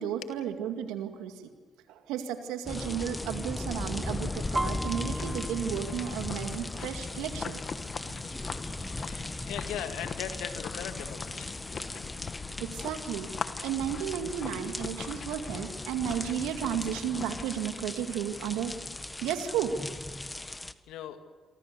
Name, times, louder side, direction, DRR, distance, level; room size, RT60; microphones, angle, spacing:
voice 1, 0.0-1.5 1.9-7.6 8.8-8.9 12.6-13.3 13.6-18.7 19.2-19.7, right 9 dB, 85° right, 7 dB, 2.2 m, -33 dB
sound 1, 2.7-20.7, left 2 dB, 20° left, 1.5 m, -38 dB
sound 2, 3.9-17.5, left 6 dB, 55° left, 1.6 m, -41 dB
Piano, 4.5-8.2 8.5-9.0 9.3-9.9 10.5-10.6 10.9-11.9 12.3-12.4, right 1 dB, 10° right, 1.6 m, -39 dB
voice 2, 9.0-11.6 20.9-21.2, left 10 dB, 80° left, 8 dB, 2.0 m, -39 dB
27.5 x 24.5 x 6.9 m, 1.4 s
hypercardioid pair, 50°, 0 cm